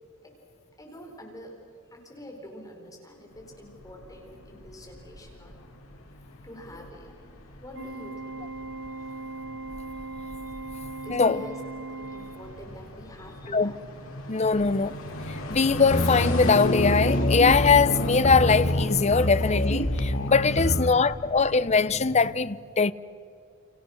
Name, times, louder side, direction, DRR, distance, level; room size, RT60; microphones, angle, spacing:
voice 1, 0.8-1.6 1.9-5.7 6.4-7.3 7.6-8.4 9.0-9.1 10.2-11.6 11.9-13.8 20.5-20.8, equal, 15° left, 4.4 m, -46 dB
sound 1, 3.4-22.3, left 1 dB, 80° left, 3.8 m, -34 dB
Organ, 7.7-12.8, right 3 dB, 60° right, 1.7 m, -39 dB
voice 2, 11.1-11.5 13.5-13.7 14.3-15.0 15.3-22.9, left 5 dB, 30° left, 0.7 m, -22 dB
sound 2, 15.9-21.0, left 1 dB, 55° left, 1.6 m, -27 dB
30.0 x 29.5 x 6.5 m
head